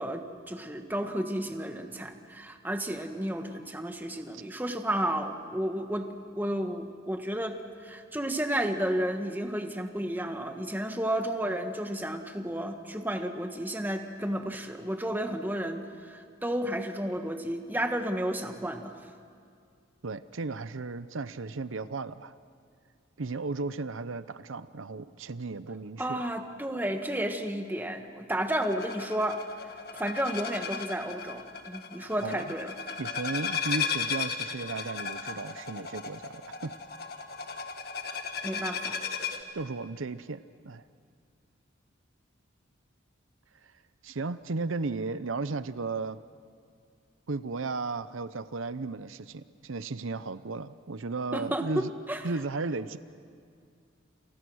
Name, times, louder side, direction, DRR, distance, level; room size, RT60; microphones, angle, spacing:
voice 1, 0.0-18.9 26.0-29.4 30.0-32.8 38.4-39.0 51.3-52.2, right 1 dB, 10° right, 5 dB, 1.5 m, -32 dB
voice 2, 20.0-22.3 23.2-26.2 32.2-32.4 33.0-36.7 39.5-40.8 44.0-46.2 47.3-51.9 52.2-53.0, right 3 dB, 80° right, 13 dB, 0.7 m, -35 dB
sound 1, 28.5-39.4, left 5 dB, 50° left, 1.8 m, -35 dB
29.0 x 29.0 x 6.4 m, 2.3 s
head